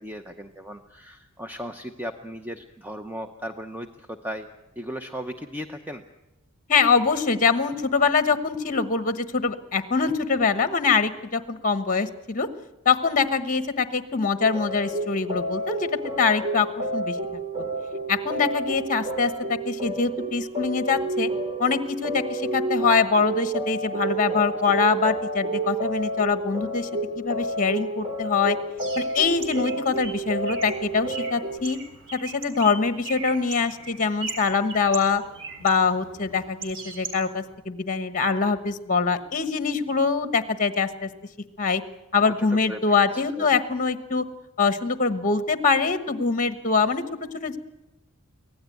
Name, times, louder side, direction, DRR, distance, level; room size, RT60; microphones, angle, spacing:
voice 1, 0.0-4.5 4.8-6.0 24.0-24.4 42.2-43.6, equal, 10° right, 6 dB, 0.8 m, -37 dB
voice 2, 6.7-12.5 12.8-15.9 16.2-17.2 18.1-21.3 21.6-26.9 27.2-28.6 29.0-31.8 32.1-35.2 35.6-41.1 41.6-41.8 42.1-44.2 44.6-47.6, left 5 dB, 35° left, 10 dB, 1.2 m, -24 dB
sound 1, 14.4-31.6, right 2 dB, 30° right, 3.1 m, -30 dB
Bird, 28.8-37.5, right 4 dB, 60° right, 3.9 m, -39 dB
24.5 x 17.5 x 9.2 m, 1.0 s
head